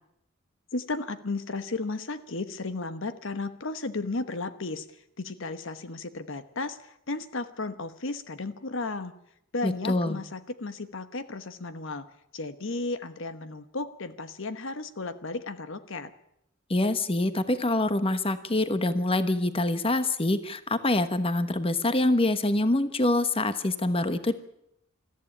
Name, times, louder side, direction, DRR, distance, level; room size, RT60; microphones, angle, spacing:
voice 1, 0.7-9.1 9.5-12.1 12.3-16.1, left 3 dB, 65° left, 11 dB, 1.1 m, -34 dB
voice 2, 9.6-10.2 16.7-24.3, left 2 dB, 25° left, 11 dB, 1.2 m, -25 dB
22.0 x 14.0 x 10.0 m, 0.78 s
head